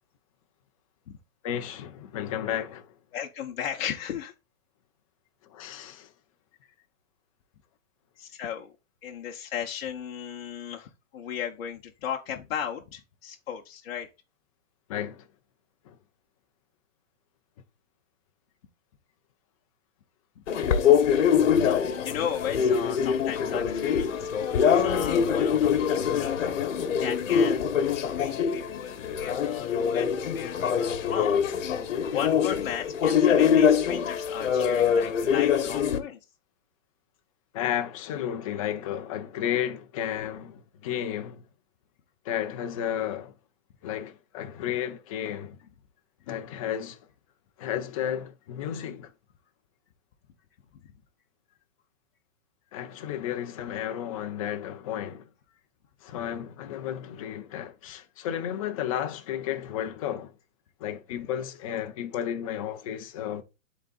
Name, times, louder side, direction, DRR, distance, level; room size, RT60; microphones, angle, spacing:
voice 1, 1.4-2.9 5.5-6.1 14.9-15.2 15.9-16.0 37.5-41.4 42.2-43.3 43.8-45.6 46.3-47.0 47.6-49.1 52.7-55.3 56.0-60.3 60.8-63.4, left 10 dB, 25° left, 0.7 m, -32 dB
voice 2, 3.1-4.3 6.6-6.7 8.2-8.7 9.0-14.1 20.4-20.5 21.6-26.7 27.0-27.7 28.0-31.3 32.0-36.2 40.2-40.3 50.8-50.9 53.6-53.7 61.2-61.3, left 9 dB, 50° left, 1.0 m, -36 dB
sound 1, 20.5-36.0, left 7 dB, 65° left, 1.3 m, -24 dB
11.0 x 4.1 x 2.5 m
hypercardioid pair, 160°, 39 cm